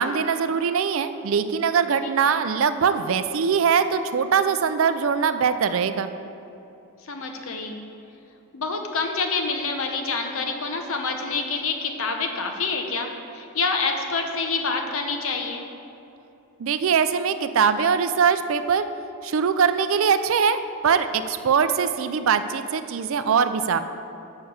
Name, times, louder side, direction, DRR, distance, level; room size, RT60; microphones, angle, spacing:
voice 1, 0.0-6.1 16.6-18.9 19.2-23.8, right 6 dB, 65° right, 11 dB, 0.4 m, -22 dB
voice 2, 7.0-7.8 8.5-15.7, left 4 dB, 65° left, 4 dB, 0.8 m, -27 dB
6.7 x 5.6 x 7.0 m, 2.8 s
head